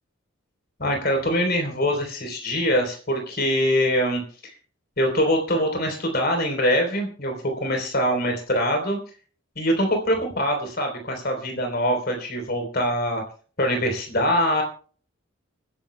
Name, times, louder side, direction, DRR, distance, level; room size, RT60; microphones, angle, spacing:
voice 1, 0.8-4.2 5.0-9.0 9.6-13.2 13.6-14.6, equal, 45° left, 4 dB, 3.6 m, -23 dB
29.0 x 10.5 x 2.2 m, 0.41 s
head